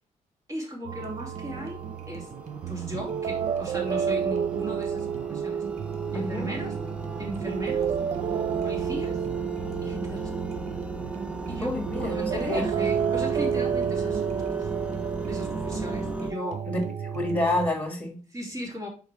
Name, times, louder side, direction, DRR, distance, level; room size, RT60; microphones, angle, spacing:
voice 1, 0.5-1.8 2.1-2.3 2.7-5.6 6.1-6.8 7.2-7.9 8.6-9.2 9.8-10.3 11.5-14.7 15.3-16.6 18.3-18.9, equal, 25° right, -1 dB, 2.8 m, -36 dB
sound 1, 0.9-16.3, right 1 dB, 10° right, 0.7 m, -37 dB
sound 2, 0.9-17.7, right 8 dB, 60° right, 0.6 m, -30 dB
voice 2, 6.1-6.5 11.6-12.7 16.7-16.8 17.1-18.2, left 2 dB, 10° left, 2 dB, 2.3 m, -28 dB
6.4 x 5.0 x 3.4 m, 0.38 s
cardioid pair, 135°, 13 cm